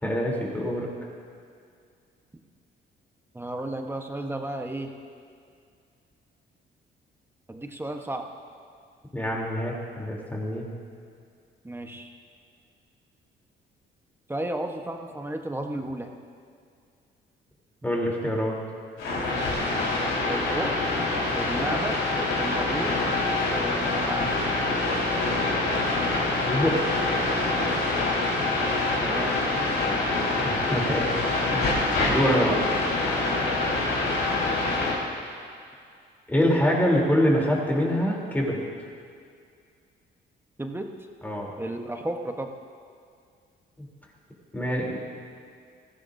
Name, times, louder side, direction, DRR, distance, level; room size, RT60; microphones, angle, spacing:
voice 1, 0.0-0.9 9.1-10.6 17.8-18.6 26.5-26.8 30.4-31.1 31.5-31.8 32.1-32.6 36.3-38.6 41.2-41.5 43.8-43.9 44.5-45.0, equal, 10° left, -3 dB, 3.4 m, -25 dB
voice 2, 3.3-4.9 7.5-8.3 11.6-12.1 14.3-16.1 20.3-20.7 21.3-22.0 22.4-23.0 23.5-24.3 29.0-29.8 32.2-32.6 33.4-33.6 40.6-40.9 41.6-42.5, right 1 dB, 10° right, 3 dB, 1.1 m, -33 dB
sound 1, 19.0-34.9, left 2 dB, 85° left, 4.1 m, -25 dB
19.0 x 15.0 x 2.7 m, 2.3 s
cardioid pair, 90°, 20 cm